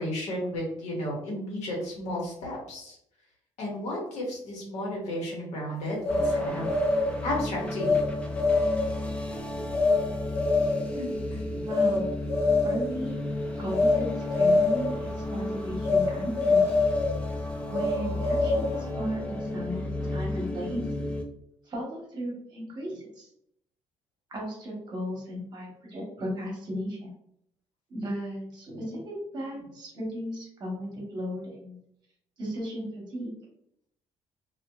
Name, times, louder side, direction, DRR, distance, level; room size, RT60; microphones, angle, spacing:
voice 1, 0.0-2.9 3.6-6.6 7.2-8.0 10.9-11.6, left 1 dB, 85° left, -3 dB, 1.2 m, -33 dB
sound 1, 6.0-7.1 7.8-8.1 8.4-9.0 9.7-10.0 10.3-10.9 11.7-12.0 12.3-12.9 13.7-14.0 14.3-14.9 15.8-16.1 16.4-17.2 17.7-18.8, left 3 dB, 60° left, 0.7 m, -24 dB
sound 2, 6.1-21.2, left 1 dB, 10° left, 0.3 m, -33 dB
voice 2, 11.7-12.2 12.6-13.2 13.6-16.6 17.7-20.8 21.7-23.3 24.3-27.1 27.9-31.8 32.4-33.3, equal, 40° right, -2 dB, 0.9 m, -35 dB
2.8 x 2.4 x 2.3 m, 0.73 s
cardioid pair, 155°, 11 cm